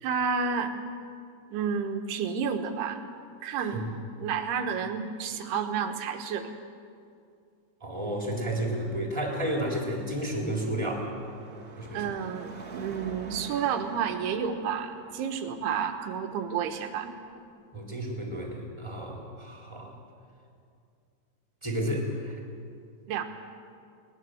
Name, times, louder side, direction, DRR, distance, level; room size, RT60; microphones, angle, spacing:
voice 1, 0.0-0.8 1.5-3.1 3.4-6.5 11.9-17.1 23.1-23.3, right 6 dB, 75° right, 6 dB, 3.2 m, -30 dB
voice 2, 7.8-11.1 11.8-12.2 17.7-20.0 21.6-22.4, right 1 dB, 5° right, 0 dB, 3.0 m, -32 dB
Car passing by / Traffic noise roadway noise / Engine, 10.1-17.5, right 4 dB, 30° right, 1.7 m, -48 dB
22.0 x 20.0 x 7.8 m, 2.4 s
omnidirectional pair, 4.9 m